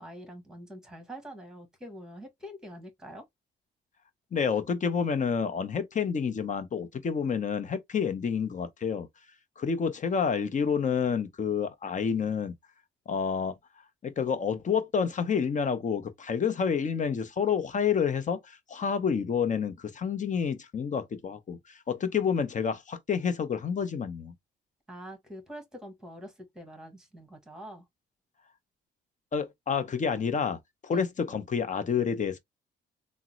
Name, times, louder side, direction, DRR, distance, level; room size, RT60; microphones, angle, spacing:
voice 1, 0.0-3.2 24.9-27.8 30.9-31.0, equal, 5° right, 1.5 m, -45 dB
voice 2, 4.3-9.1 9.6-12.5 13.1-13.5 14.0-21.6 21.9-24.3 29.3-32.4, left 6 dB, 40° left, 0.7 m, -29 dB
3.6 x 2.1 x 2.9 m
cardioid pair, 90°, 20 cm